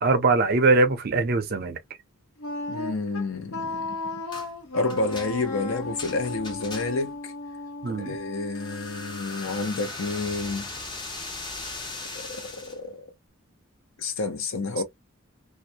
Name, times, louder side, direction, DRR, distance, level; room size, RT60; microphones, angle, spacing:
voice 1, 0.0-1.8 7.8-8.2, right 3 dB, 45° right, 0.5 m, -22 dB
Wind instrument woodwind instrument, 2.4-9.3, left 2 dB, 90° left, 1.0 m, -35 dB
voice 2, 2.7-4.2 4.7-7.3 8.0-10.7 12.1-13.0 14.0-14.8, left 3 dB, 70° left, 0.6 m, -30 dB
sound 1, 4.3-4.5 4.9-7.2 8.5-12.8, left 2 dB, 20° left, 0.5 m, -39 dB
2.3 x 2.1 x 2.6 m
head